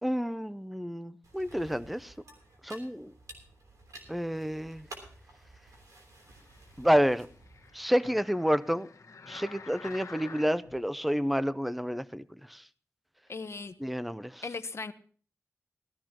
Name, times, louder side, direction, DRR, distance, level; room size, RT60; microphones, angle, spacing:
voice 1, 0.0-2.1 2.6-3.1 4.1-4.9 6.8-7.3 7.7-8.9 9.3-12.6 13.8-14.4, equal, ahead, 0.6 m, -29 dB
sound 1, 1.2-7.8, right 1 dB, 85° right, 3.3 m, -52 dB
sound 2, 6.2-10.8 11.4-11.5, left 4 dB, 75° left, 1.5 m, -49 dB
voice 2, 13.3-13.8 14.4-14.9, left 4 dB, 55° left, 0.9 m, -37 dB
17.5 x 13.5 x 2.9 m
cardioid pair, 60°, 5 cm